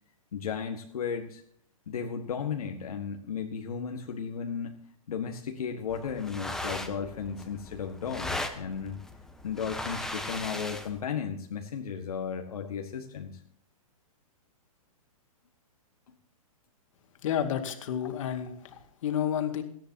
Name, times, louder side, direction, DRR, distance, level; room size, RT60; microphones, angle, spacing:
voice 1, 0.3-1.4 1.9-4.7 5.1-9.0 9.4-13.3 16.1-16.2, left 6 dB, 80° left, 2 dB, 1.7 m, -35 dB
sound 1, 5.9-11.0, left 1 dB, 5° left, 1.2 m, -38 dB
voice 2, 17.2-19.6, left 9 dB, 60° left, 6 dB, 2.2 m, -31 dB
18.5 x 13.5 x 2.9 m, 0.64 s
hypercardioid pair, 135°, 19 cm